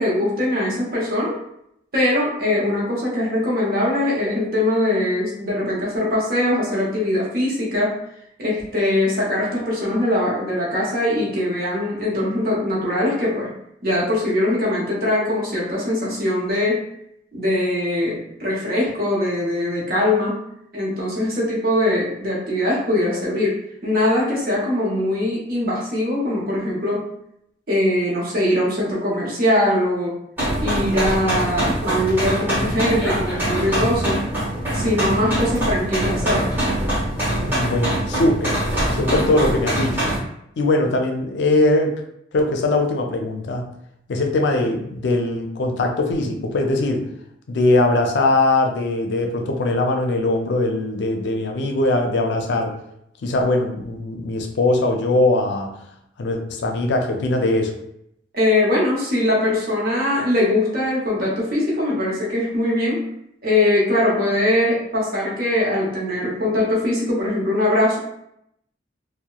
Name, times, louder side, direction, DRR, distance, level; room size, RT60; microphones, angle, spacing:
voice 1, 0.0-1.4 1.9-8.0 8.4-13.5 13.8-16.8 17.3-20.4 20.7-23.6 23.8-27.1 27.7-30.1 30.6-34.2 34.7-36.5 58.3-63.0 63.4-68.0, left 1 dB, 55° right, -5 dB, 0.9 m, -21 dB
sound 1, 30.4-40.2, right 1 dB, 10° right, 0.8 m, -23 dB
voice 2, 37.4-38.6 38.9-40.1 40.6-41.9 42.3-43.7 44.1-47.0 47.5-52.7 53.2-55.8 56.2-57.7, left 2 dB, 75° left, 3 dB, 0.4 m, -21 dB
2.8 x 2.1 x 2.3 m, 0.76 s
head